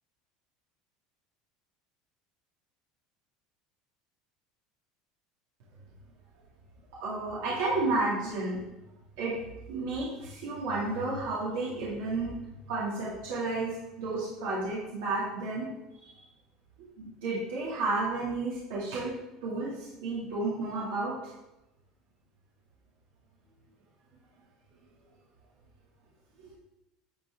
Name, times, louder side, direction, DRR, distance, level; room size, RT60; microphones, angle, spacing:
voice 1, 7.0-8.6 9.2-9.4 9.7-12.4 12.7-15.7 17.0-19.1 19.4-21.2 26.4-26.5, right 3 dB, 85° right, -7 dB, 2.2 m, -32 dB
10.5 x 4.4 x 3.5 m, 0.97 s
cardioid pair, 175°, 0 cm